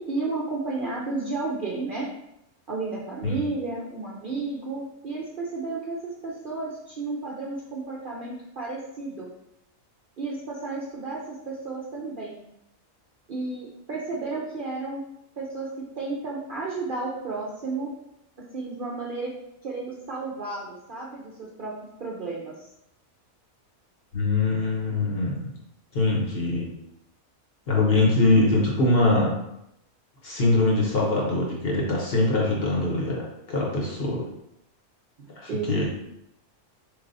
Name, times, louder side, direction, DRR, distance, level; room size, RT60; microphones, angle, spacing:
voice 1, 0.0-2.1 2.7-9.3 10.2-12.4 13.3-15.1 15.4-17.9 18.5-19.3 19.6-21.7 22.0-22.7 35.2-35.7, right 3 dB, 55° right, -4 dB, 0.6 m, -32 dB
voice 2, 24.1-25.5 25.9-26.7 27.7-29.3 30.2-34.2 35.4-35.8, left 2 dB, 50° left, -3 dB, 0.9 m, -23 dB
4.2 x 3.3 x 2.6 m, 0.81 s
omnidirectional pair, 1.5 m